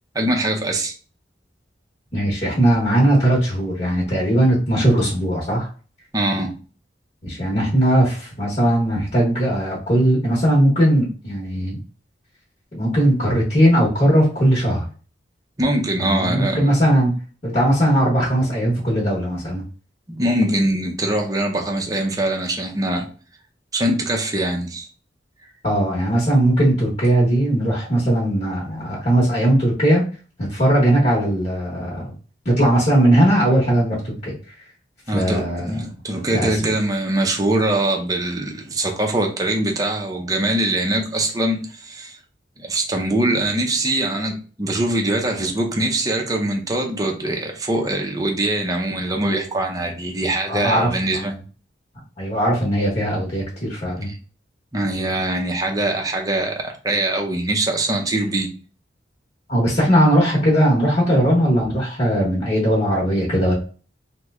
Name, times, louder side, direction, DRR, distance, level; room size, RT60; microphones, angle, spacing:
voice 1, 0.1-0.9 6.1-6.5 14.8-14.9 15.6-16.7 20.1-23.0 23.7-24.9 35.1-42.2 42.6-51.3 54.0-54.2 54.7-58.5, right 1 dB, 20° right, 0.6 m, -22 dB
voice 2, 2.1-5.7 7.2-11.8 12.7-14.8 16.0-17.1 17.4-19.6 25.6-30.1 30.4-32.1 32.4-34.5 35.1-35.8 36.3-36.7 50.5-51.2 52.2-54.1 59.5-63.5, right 1 dB, 40° left, 1.0 m, -19 dB
3.0 x 2.1 x 3.5 m
head